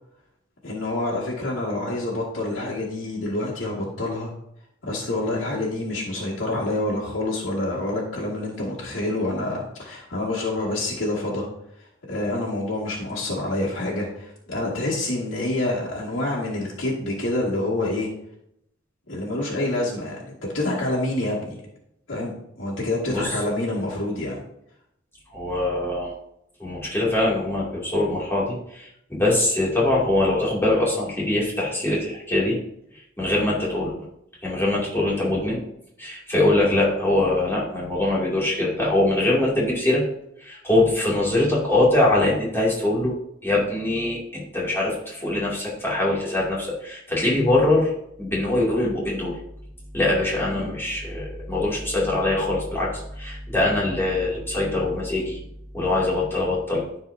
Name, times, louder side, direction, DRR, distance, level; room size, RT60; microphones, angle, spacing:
voice 1, 0.6-4.3 4.8-11.5 12.1-18.1 19.1-21.6 22.1-24.4 50.4-50.8, left 2 dB, 75° left, -6 dB, 2.3 m, -27 dB
voice 2, 25.3-26.1 26.6-32.6 33.2-33.9 34.4-35.6 36.0-40.0 40.4-43.1 43.4-47.9 48.2-49.4 49.9-55.4 55.7-56.8, left 2 dB, 10° left, -6 dB, 2.6 m, -23 dB
14.0 x 4.7 x 2.7 m, 0.76 s
head